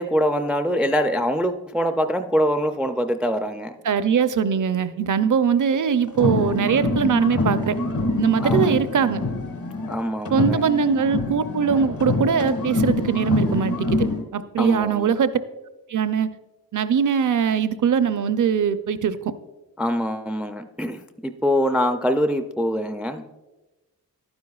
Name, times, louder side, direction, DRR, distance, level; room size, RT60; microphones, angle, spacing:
voice 1, 0.0-3.8 8.4-8.8 9.9-10.6 14.6-15.1 19.8-23.2, equal, 5° right, 8 dB, 0.4 m, -24 dB
voice 2, 3.8-7.8 8.2-9.2 10.3-14.1 14.3-15.3 15.9-16.3 16.7-19.3, right 7 dB, 55° right, 13 dB, 0.5 m, -21 dB
sound 1, 6.1-10.0 10.2-14.2, left 2 dB, 65° left, 1.5 m, -25 dB
11.5 x 9.6 x 2.3 m, 1.1 s
cardioid pair, 65°, 37 cm